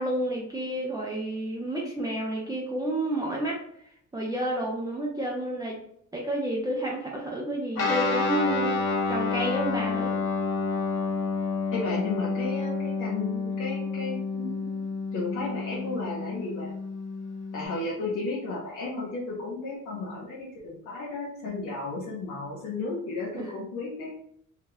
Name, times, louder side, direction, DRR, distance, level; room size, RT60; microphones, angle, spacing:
voice 1, 0.0-3.6 4.1-5.8 6.1-10.2 23.3-23.5, right 1 dB, 10° right, -4 dB, 0.6 m, -30 dB
Guitar, 7.7-17.7, left 4 dB, 50° left, 1.0 m, -29 dB
voice 2, 11.7-16.7 17.5-24.1, left 3 dB, 90° left, -6 dB, 0.9 m, -34 dB
2.9 x 2.4 x 3.2 m, 0.67 s
cardioid pair, 90°, 30 cm